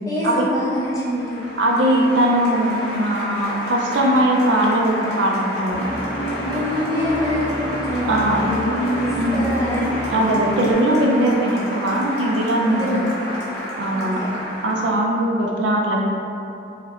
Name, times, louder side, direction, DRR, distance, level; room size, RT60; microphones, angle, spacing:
voice 1, 0.1-1.4 1.7-2.1 6.2-10.0 12.7-13.4 13.9-14.5, left 1 dB, 20° left, -9 dB, 0.7 m, -26 dB
Applause, 0.7-15.1, left 1 dB, 60° left, 0.8 m, -31 dB
voice 2, 1.6-5.9 8.1-8.4 9.2-9.5 10.1-13.0 13.8-14.3 14.6-16.0, right 1 dB, 75° right, -1 dB, 0.4 m, -20 dB
sound 1, 5.7-10.7, right 1 dB, 25° right, 0.6 m, -29 dB
3.8 x 2.1 x 2.9 m, 2.7 s
head